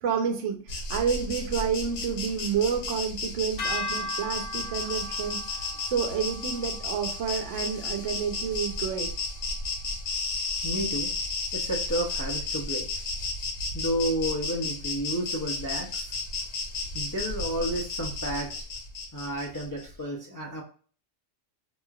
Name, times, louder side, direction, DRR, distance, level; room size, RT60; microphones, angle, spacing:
voice 1, 0.0-5.4 5.8-9.1, right 7 dB, 70° right, 5 dB, 0.9 m, -29 dB
Insect, 0.7-19.9, left 3 dB, 75° left, 1.1 m, -33 dB
sound 1, 3.6-9.9, left 1 dB, 60° left, 0.8 m, -39 dB
voice 2, 10.6-11.1 11.5-12.9 13.7-16.2 16.9-18.5 19.1-20.6, equal, 30° left, -3 dB, 0.3 m, -31 dB
3.0 x 2.4 x 2.3 m, 0.42 s
omnidirectional pair, 1.3 m